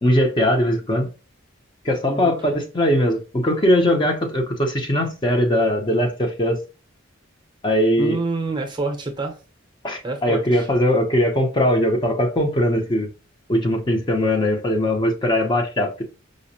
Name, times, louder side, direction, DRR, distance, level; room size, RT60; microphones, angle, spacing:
voice 1, 0.0-1.1 1.8-6.6 7.6-8.2 9.8-13.1 13.5-16.0, left 1 dB, 25° left, 0.6 m, -20 dB
voice 2, 8.0-9.4 10.0-10.7, right 3 dB, 25° right, 0.6 m, -27 dB
5.0 x 2.0 x 2.7 m
head